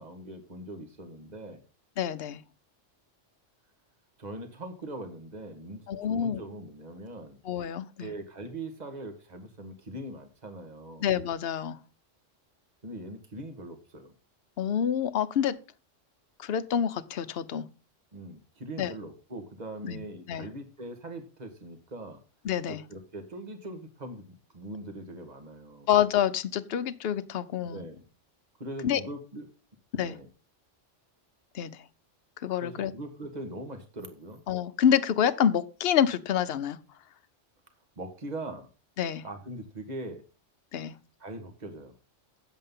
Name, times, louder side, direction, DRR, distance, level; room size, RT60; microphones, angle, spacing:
voice 1, 0.0-1.6 4.2-7.4 8.0-11.1 12.8-14.1 18.1-22.2 22.7-25.9 27.6-28.1 28.6-29.5 29.9-30.3 32.6-34.4 38.0-38.7 39.2-40.2 41.2-41.9, right 1 dB, 35° right, 6 dB, 1.7 m, -41 dB
voice 2, 2.0-2.4 5.9-6.4 7.4-8.1 11.0-11.8 14.6-15.6 16.4-17.7 18.8-18.9 19.8-20.5 22.4-22.8 25.9-27.9 28.8-29.0 29.9-30.2 31.5-31.8 32.4-32.9 34.5-36.8 39.0-39.2 40.7-40.9, left 9 dB, 60° left, 11 dB, 0.9 m, -27 dB
9.1 x 7.7 x 5.5 m, 0.34 s
omnidirectional pair, 1.3 m